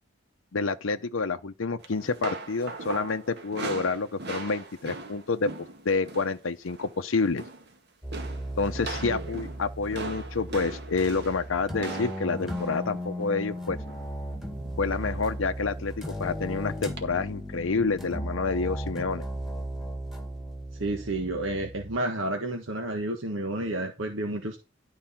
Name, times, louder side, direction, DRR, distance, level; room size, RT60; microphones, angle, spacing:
voice 1, 0.5-5.5 5.8-7.4 8.6-13.8 14.8-19.2, left 4 dB, 90° left, 0.7 m, -28 dB
sound 1, 1.8-6.4 6.6-7.0 7.2-7.7 8.1-14.1 15.0-15.4 15.7-15.9 17.0-17.1, right 3 dB, 60° right, 2.0 m, -40 dB
sound 2, 8.0-22.0, equal, ahead, 2.1 m, -36 dB
voice 2, 9.0-9.3 14.5-14.8 20.7-24.6, right 1 dB, 75° right, 1.5 m, -31 dB
12.5 x 4.8 x 5.7 m
head